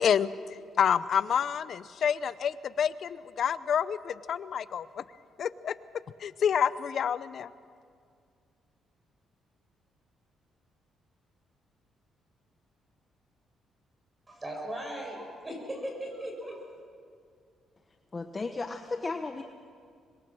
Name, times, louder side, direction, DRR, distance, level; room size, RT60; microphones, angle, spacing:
voice 1, 0.0-5.0 5.4-5.7 6.2-7.5, left 8 dB, 60° left, 15 dB, 0.7 m, -28 dB
voice 2, 14.3-16.6, right 1 dB, 25° right, 1 dB, 7.8 m, -38 dB
voice 3, 18.1-19.4, left 3 dB, 30° left, 6 dB, 1.1 m, -34 dB
25.5 x 22.0 x 6.3 m, 2.2 s
cardioid pair, 90°, 0 cm